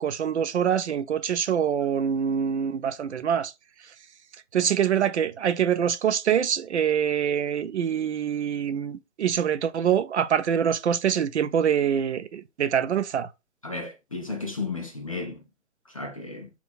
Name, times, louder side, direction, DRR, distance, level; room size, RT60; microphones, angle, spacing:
voice 1, 0.0-3.5 4.5-13.3, right 8 dB, 60° right, 0.5 m, -25 dB
voice 2, 13.6-15.4 15.9-16.5, left 3 dB, 30° left, 0.4 m, -34 dB
3.6 x 2.4 x 3.9 m
figure-of-eight pair, 135°, 39 cm